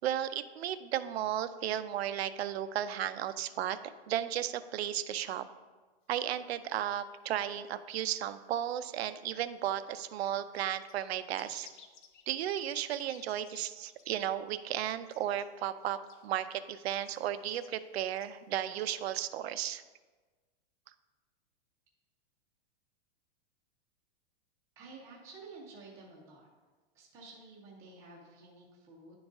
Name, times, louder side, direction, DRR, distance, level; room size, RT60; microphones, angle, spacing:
voice 1, 0.0-5.5 6.1-11.7 12.3-19.8, right 11 dB, 70° right, 12 dB, 0.5 m, -34 dB
sound 1, 10.2-13.6 13.9-14.1 14.5-15.5 15.8-16.3 17.0-17.7 18.1-18.8, left 7 dB, 50° left, 0.6 m, -57 dB
voice 2, 24.8-26.5 26.9-29.1, right 3 dB, 10° right, -3 dB, 0.5 m, -51 dB
10.5 x 3.9 x 3.5 m, 1.3 s
supercardioid pair, 180°, 33 cm